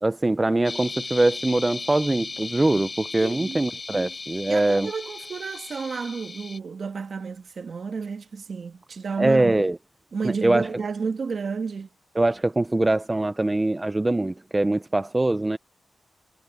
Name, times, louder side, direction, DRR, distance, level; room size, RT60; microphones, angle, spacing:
voice 1, 0.0-4.9 9.2-9.8 10.2-10.7 12.2-15.6, right 2 dB, 20° right, 0.6 m, -23 dB
sound 1, 0.6-6.6, left 3 dB, 40° left, 3.8 m, -36 dB
voice 2, 3.2-3.7 4.5-9.6 10.1-11.9, right 5 dB, 60° right, 1.5 m, -31 dB
wide cardioid pair, 110°, 0 cm